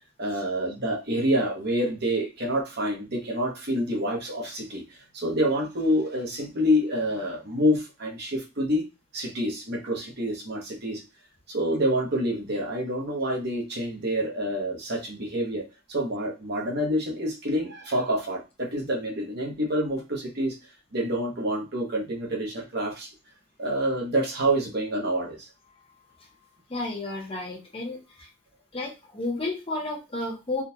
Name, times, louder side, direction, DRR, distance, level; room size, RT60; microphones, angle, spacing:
voice 1, 0.2-8.8 9.1-11.0 11.5-20.6 20.9-23.1 23.6-25.5, equal, 50° right, -1 dB, 1.0 m, -27 dB
voice 2, 26.7-28.3 28.7-30.6, left 2 dB, 25° left, 0 dB, 0.8 m, -32 dB
3.7 x 2.4 x 2.8 m, 0.27 s
head